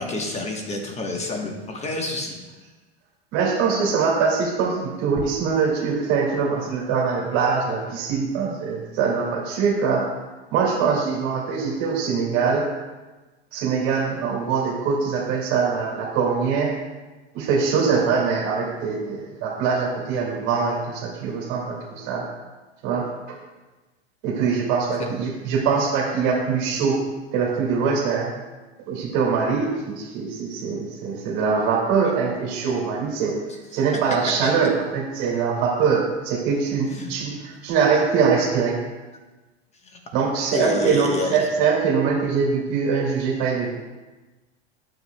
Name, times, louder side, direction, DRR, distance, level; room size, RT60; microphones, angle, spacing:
voice 1, 0.0-2.4 25.0-25.1 33.9-34.0 34.4-34.7 36.9-37.1 39.8-40.0 40.4-41.5, left 2 dB, 20° left, 2 dB, 1.2 m, -29 dB
voice 2, 3.3-10.0 10.5-12.7 13.5-16.8 17.3-22.2 22.8-23.4 24.2-27.0 27.3-28.3 28.9-33.3 33.7-38.8 40.1-43.7, right 5 dB, 55° right, -2 dB, 2.1 m, -23 dB
9.3 x 7.3 x 2.2 m, 1.2 s
hypercardioid pair, 110°, 33 cm